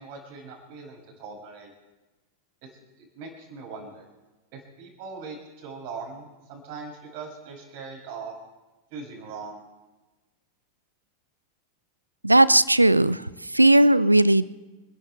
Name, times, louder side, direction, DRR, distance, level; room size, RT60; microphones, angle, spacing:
voice 1, 0.0-1.7 2.6-2.7 3.0-4.1 4.5-8.3 8.9-9.6, right 4 dB, 50° right, -1 dB, 7.1 m, -40 dB
voice 2, 12.2-14.4, right 1 dB, 85° right, 19 dB, 0.5 m, -17 dB
29.0 x 11.5 x 3.7 m, 1.1 s
figure-of-eight pair, 90°, 0 cm